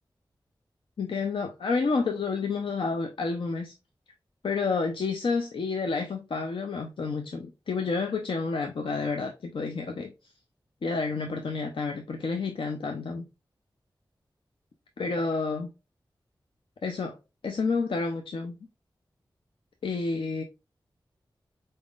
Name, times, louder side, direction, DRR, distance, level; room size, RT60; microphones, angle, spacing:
voice 1, 1.0-3.7 4.4-10.1 10.8-13.2 15.0-15.7 16.8-17.1 17.4-18.5 19.8-20.4, left 4 dB, 80° left, 0.5 m, -29 dB
4.1 x 3.6 x 2.4 m
cardioid pair, 50°, 9 cm